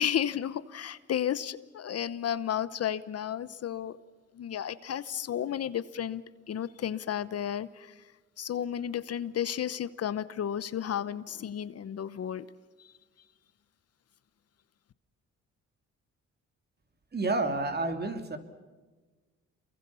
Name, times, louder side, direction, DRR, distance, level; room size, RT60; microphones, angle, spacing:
voice 1, 0.0-4.0 4.3-7.9 8.4-12.5, left 9 dB, 55° left, 16 dB, 0.9 m, -33 dB
voice 2, 17.1-18.4, right 2 dB, 35° right, 7 dB, 3.1 m, -29 dB
28.0 x 23.5 x 7.0 m, 1.3 s
cardioid pair, 90°, 30 cm